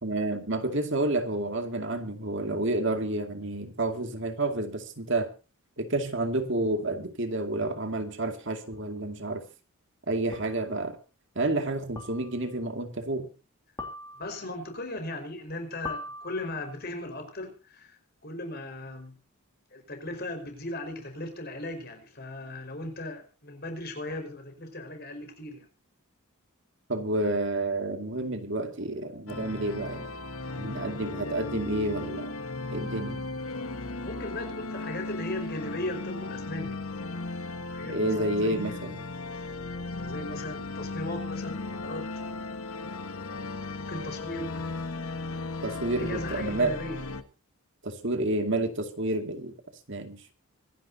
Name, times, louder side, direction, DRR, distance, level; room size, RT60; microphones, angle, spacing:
voice 1, 0.0-5.3 5.8-9.5 10.1-11.0 11.4-13.3 26.9-30.1 30.6-32.3 32.7-33.2 37.9-39.0 45.6-46.8 47.8-49.5 49.9-50.3, right 2 dB, 55° right, 6 dB, 2.4 m, -30 dB
sound 1, 8.7-8.8 10.3-10.7 12.0-12.5 13.8-14.6 15.9-16.8, left 2 dB, 15° left, 3.4 m, -41 dB
voice 2, 14.2-19.2 19.7-25.7 34.0-36.8 37.3-38.8 39.3-42.1 43.2-43.5 43.8-44.7 46.0-47.0, left 1 dB, 45° left, 6 dB, 5.1 m, -38 dB
sound 2, 29.3-47.2, left 3 dB, 75° left, 1.5 m, -36 dB
25.5 x 11.0 x 2.8 m, 0.32 s
head